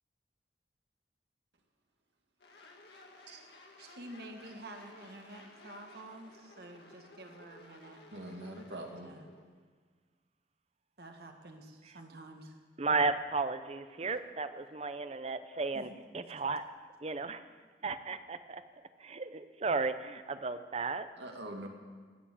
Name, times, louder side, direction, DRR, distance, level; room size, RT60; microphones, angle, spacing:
sound 1, 2.4-9.4, left 1 dB, 70° left, 2.0 m, -56 dB
voice 1, 3.8-8.0 9.0-9.3 11.0-12.6 15.7-16.0, right 1 dB, 60° right, 3 dB, 1.7 m, -49 dB
voice 2, 8.1-9.1 21.2-21.7, right 1 dB, 85° right, 2 dB, 2.0 m, -43 dB
voice 3, 12.8-15.9 16.1-16.6 17.0-17.4 17.8-18.6 19.0-21.1, right 4 dB, 35° right, 11 dB, 0.6 m, -34 dB
16.0 x 7.0 x 8.7 m, 1.5 s
head